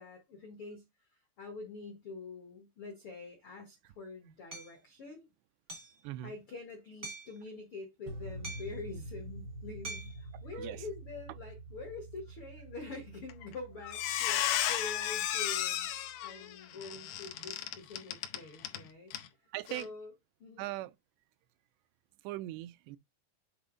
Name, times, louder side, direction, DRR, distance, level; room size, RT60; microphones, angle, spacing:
voice 1, 0.0-5.3 6.2-19.1 19.7-20.1 20.4-20.7, left 3 dB, 70° left, 1.2 m, -46 dB
Hammer, 4.5-4.7 5.7-6.0 7.0-7.4 8.4-8.9 9.8-10.2, right 3 dB, 55° right, 0.9 m, -44 dB
sound 1, 8.1-16.2, right 2 dB, 75° right, 1.2 m, -47 dB
voice 2, 10.5-10.9 19.5-19.9 20.6-20.9 22.2-23.0, right 16 dB, 90° right, 2.7 m, -39 dB
Squeak, 13.3-13.5 13.8-18.8 19.1-19.3 19.7-19.8, left 12 dB, 90° left, 1.9 m, -33 dB
8.0 x 3.3 x 3.8 m
omnidirectional pair, 4.7 m